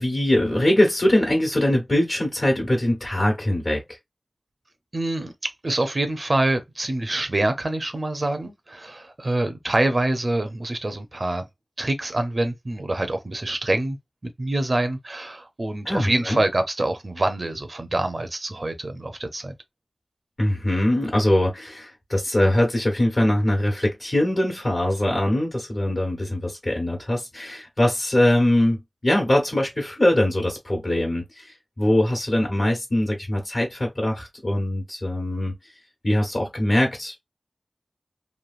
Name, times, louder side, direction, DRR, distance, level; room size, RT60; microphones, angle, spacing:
voice 1, 0.0-4.0 15.8-16.4 20.4-35.5 36.0-37.2, left 1 dB, 50° left, 1.2 m, -22 dB
voice 2, 4.9-11.5 11.8-14.0 14.2-19.5, right 2 dB, 50° right, 0.6 m, -25 dB
3.1 x 2.5 x 2.4 m
wide cardioid pair, 55°, 0 cm